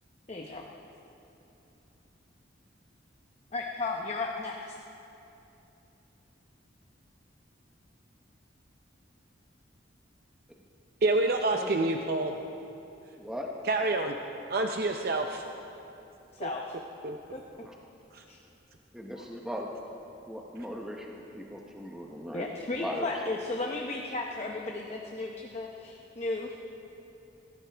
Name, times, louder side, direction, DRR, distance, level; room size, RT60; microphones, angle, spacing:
voice 1, 0.3-0.6 3.5-4.7 16.3-16.8 17.3-17.4 18.3-18.4 19.2-19.3 22.3-26.7, left 2 dB, 35° left, 0 dB, 0.9 m, -35 dB
voice 2, 11.0-12.3 13.6-14.2 14.5-15.5 16.4-16.5 17.0-17.2 18.1-18.2, right 2 dB, 55° right, 4 dB, 0.6 m, -27 dB
voice 3, 13.2-13.5 17.6-17.7 18.9-19.7 20.3-22.5 22.8-23.1, equal, 5° right, -1 dB, 0.9 m, -38 dB
21.5 x 16.5 x 3.4 m, 2.9 s
head